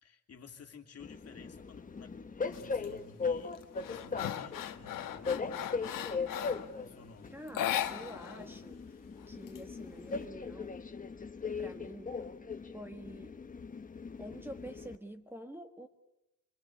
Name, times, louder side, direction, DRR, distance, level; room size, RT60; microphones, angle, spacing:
voice 1, 0.0-6.0 6.4-7.4, left 5 dB, 50° left, 4 dB, 2.9 m, -54 dB
Train, 1.0-15.0, left 4 dB, 25° left, 1.2 m, -39 dB
sound 1, 2.5-2.9 3.3-6.7 7.5-8.4 8.7-8.8 9.2-10.1, left 11 dB, 80° left, 1.6 m, -37 dB
voice 2, 7.3-9.0 9.3-10.7 11.6-12.2 12.7-13.4 14.2-15.9, equal, 5° right, 6 dB, 1.5 m, -47 dB
26.0 x 25.5 x 8.4 m, 0.88 s
wide cardioid pair, 155°, 32 cm